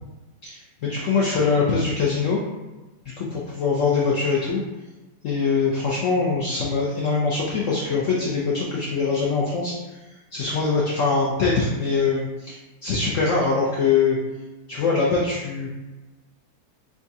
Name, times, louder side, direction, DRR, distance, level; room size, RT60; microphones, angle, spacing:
voice 1, 0.4-2.4 3.2-4.6 5.2-9.7 10.3-14.2 14.7-15.7, left 4 dB, 85° left, -4 dB, 0.6 m, -23 dB
4.9 x 2.3 x 2.6 m, 1.1 s
omnidirectional pair, 2.0 m